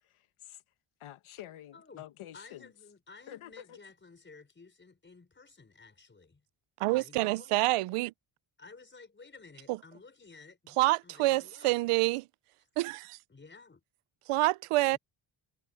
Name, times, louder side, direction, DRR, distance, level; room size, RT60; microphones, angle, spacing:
voice 1, 0.0-0.6 1.0-2.7 3.3-3.8, left 12 dB, 75° left, 1.2 m, -48 dB
voice 2, 1.7-2.1 2.3-6.5 6.9-7.6 8.6-12.2 13.3-13.8 14.9-15.0, left 4 dB, 20° left, 5.6 m, -54 dB
voice 3, 6.8-8.1 10.8-12.2 12.8-13.2 14.3-15.0, right 19 dB, 90° right, 0.6 m, -27 dB
cardioid pair, 135°, 50 cm